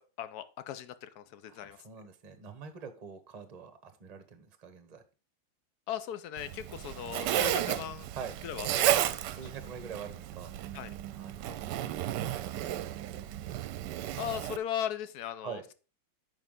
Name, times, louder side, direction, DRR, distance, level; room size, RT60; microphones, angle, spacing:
voice 1, 0.0-1.8 5.9-8.1 8.4-9.2 10.7-10.9 14.2-15.7, left 10 dB, 65° left, 13 dB, 1.1 m, -38 dB
voice 2, 1.5-5.0 8.1-8.4 9.3-10.5 11.1-13.4 15.4-15.6, right 6 dB, 30° right, 9 dB, 0.8 m, -45 dB
Zipper (clothing), 6.4-14.6, right 12 dB, 75° right, 1.1 m, -33 dB
9.4 x 5.7 x 3.7 m, 0.34 s
omnidirectional pair, 2.0 m